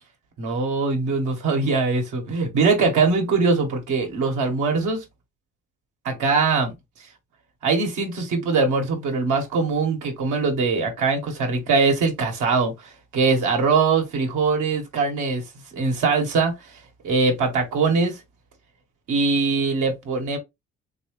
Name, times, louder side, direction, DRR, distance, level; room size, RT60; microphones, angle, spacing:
voice 1, 0.4-5.0 6.0-6.7 7.6-15.4 15.7-16.5 17.0-18.2 19.1-20.4, right 4 dB, 85° right, 1.4 m, -22 dB
3.6 x 3.0 x 3.0 m
cardioid pair, 90°, 30 cm